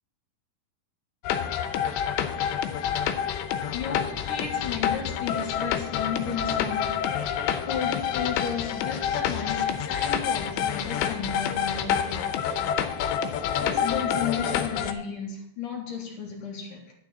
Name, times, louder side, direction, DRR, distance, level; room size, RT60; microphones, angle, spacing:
sound 1, 1.2-14.9, left 9 dB, 85° left, 3.0 m, -28 dB
voice 1, 3.7-7.2 7.7-12.6 13.6-16.9, left 6 dB, 60° left, 2.5 m, -33 dB
11.5 x 10.0 x 4.1 m
omnidirectional pair, 5.0 m